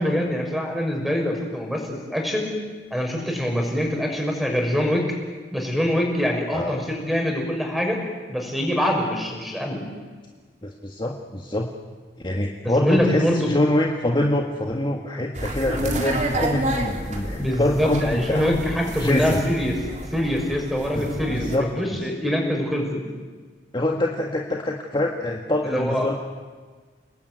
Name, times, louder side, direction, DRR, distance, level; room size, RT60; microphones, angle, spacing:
voice 1, 0.0-2.5 2.9-5.0 5.5-8.0 8.3-9.8 12.6-13.5 17.3-19.8 20.1-23.0 25.6-26.1, equal, ahead, 1 dB, 6.3 m, -24 dB
voice 2, 6.5-6.8 10.6-11.7 12.2-18.5 19.0-19.4 20.9-21.7 23.7-26.2, left 1 dB, 25° left, 0 dB, 1.8 m, -25 dB
sound 1, 15.3-21.6, right 1 dB, 45° right, 3.7 m, -30 dB
29.5 x 20.0 x 9.5 m, 1.4 s
head